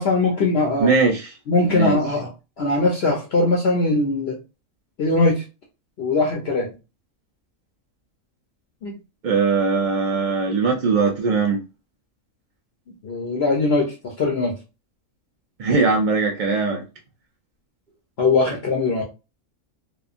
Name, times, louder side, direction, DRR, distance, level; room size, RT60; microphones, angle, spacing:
voice 1, 0.0-0.9 1.5-2.3 2.6-4.4 5.0-5.4 6.0-6.7 8.8-9.0 13.0-14.5 18.2-19.0, left 2 dB, 55° left, 0.8 m, -20 dB
voice 2, 0.8-1.3 1.7-2.0 9.2-11.6 15.6-16.8, right 4 dB, 70° right, 0.4 m, -20 dB
2.9 x 2.2 x 2.5 m
omnidirectional pair, 1.5 m